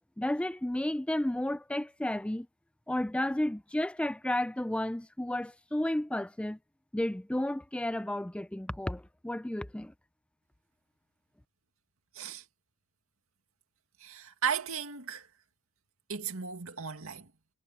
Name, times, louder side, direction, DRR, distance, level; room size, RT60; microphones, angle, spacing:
voice 1, 0.2-2.5 2.9-6.6 6.9-9.9, left 1 dB, 5° left, 0.4 m, -32 dB
voice 2, 12.1-12.4 14.0-15.3 16.1-17.3, right 7 dB, 80° right, 2.2 m, -35 dB
head